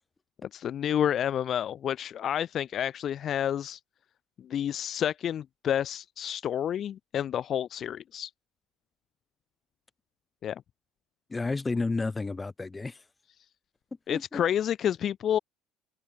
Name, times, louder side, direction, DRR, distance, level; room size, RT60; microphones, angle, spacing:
voice 1, 0.4-3.8 4.4-8.3 10.4-10.6 14.1-15.4, left 10 dB, 45° left, 0.6 m, -29 dB
voice 2, 11.3-13.0 14.1-14.4, left 3 dB, 20° left, 4.0 m, -31 dB
hypercardioid pair, 65°, 0 cm